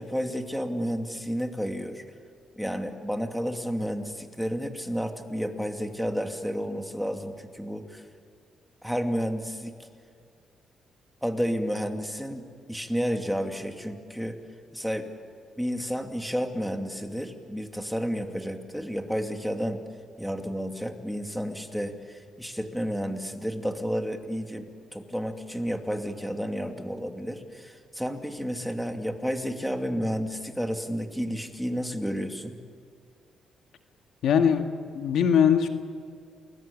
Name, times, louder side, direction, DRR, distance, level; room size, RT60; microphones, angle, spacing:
voice 1, 0.0-2.0 2.6-8.0 8.8-9.9 11.2-14.4 14.7-15.1 15.6-19.8 20.2-32.6, equal, ahead, 5 dB, 2.5 m, -31 dB
voice 2, 34.2-34.7 34.9-35.7, left 8 dB, 80° left, 6 dB, 1.9 m, -21 dB
29.5 x 20.5 x 8.6 m, 2.2 s
cardioid pair, 85°, 0 cm